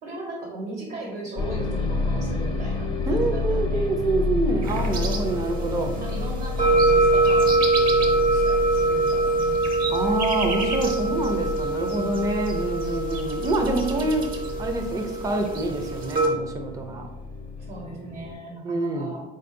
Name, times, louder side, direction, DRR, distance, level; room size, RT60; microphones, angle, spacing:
voice 1, 0.0-4.5 5.9-10.0 11.8-12.3 13.9-14.1 17.6-19.2, right 2 dB, 80° right, -4 dB, 1.4 m, -38 dB
sound 1, 1.4-18.3, left 3 dB, 25° left, 0.5 m, -31 dB
voice 2, 3.1-5.9 9.9-14.2 14.6-17.1 18.6-19.1, right 2 dB, 20° right, 3 dB, 0.5 m, -26 dB
sound 2, 4.6-16.3, right 2 dB, 55° right, 0.8 m, -24 dB
3.9 x 2.6 x 3.8 m, 0.99 s
cardioid pair, 110°, 17 cm